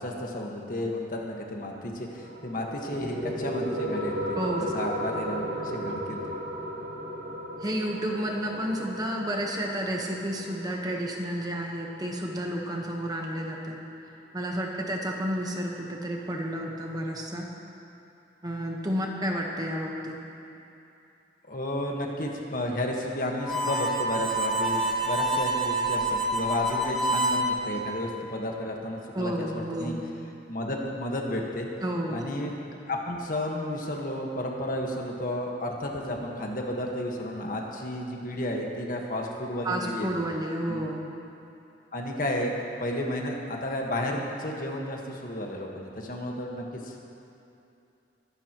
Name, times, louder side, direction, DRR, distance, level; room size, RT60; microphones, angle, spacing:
voice 1, 0.0-6.2 21.5-30.0 30.5-31.7 32.1-32.5 32.9-40.1 40.7-40.8 41.9-46.9, left 1 dB, 50° left, 0 dB, 1.5 m, -32 dB
sound 1, 2.2-13.2, right 1 dB, 85° right, 1.6 m, -35 dB
voice 2, 4.3-4.7 7.6-13.8 14.3-17.5 18.4-20.2 29.1-30.0 31.8-32.2 39.6-41.1, equal, 20° right, 0 dB, 1.1 m, -31 dB
Harmonica, 23.4-27.5, right 1 dB, ahead, 1.4 m, -27 dB
22.5 x 11.5 x 3.0 m, 2.8 s
head